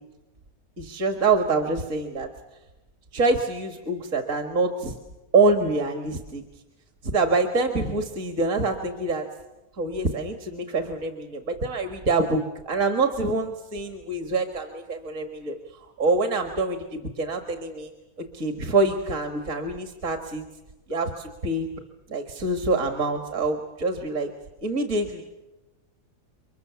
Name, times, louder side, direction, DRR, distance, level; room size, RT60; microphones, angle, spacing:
voice 1, 0.8-2.3 3.1-5.0 5.3-6.4 7.1-9.2 9.8-15.6 16.0-16.8 17.2-17.9 18.3-20.4 20.9-21.7 22.1-24.3 24.6-25.2, right 3 dB, 60° right, 5 dB, 2.1 m, -25 dB
29.5 x 24.0 x 7.0 m, 1.1 s
omnidirectional pair, 1.6 m